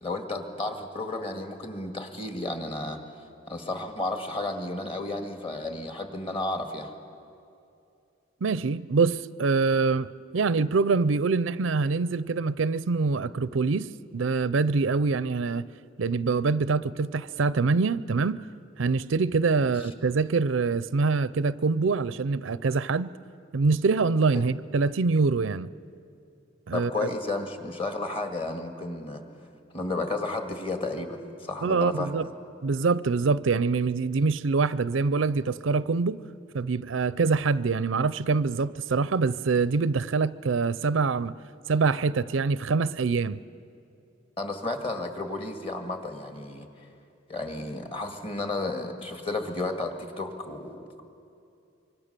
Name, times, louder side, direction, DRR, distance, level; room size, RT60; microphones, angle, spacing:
voice 1, 0.0-3.0 3.5-6.9 19.6-19.7 24.3-24.5 26.7-29.2 29.7-32.2 44.4-46.7 47.3-51.0, left 2 dB, 30° left, 1.9 m, -32 dB
voice 2, 8.4-10.1 10.3-15.7 16.0-18.4 18.8-23.1 23.5-25.7 26.7-26.9 31.6-32.3 32.6-36.2 36.5-41.3 41.7-43.4, right 4 dB, 85° right, 0.5 m, -25 dB
25.5 x 24.0 x 6.8 m
head